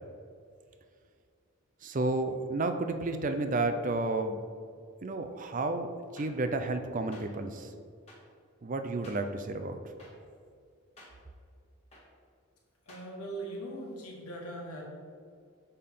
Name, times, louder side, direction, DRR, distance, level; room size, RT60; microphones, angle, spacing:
voice 1, 1.8-4.4 5.0-7.7 8.6-9.8, right 2 dB, 35° right, 8 dB, 0.4 m, -31 dB
sound 1, 6.2-6.3 7.1-7.2 8.1-8.2 9.0-9.2 10.0-10.1 11.0-11.1 11.9-12.0 12.9-13.0, left 1 dB, 30° left, 1.4 m, -52 dB
voice 2, 12.8-14.8, right 1 dB, 85° left, -2 dB, 1.5 m, -40 dB
6.6 x 5.5 x 3.6 m, 2.2 s
head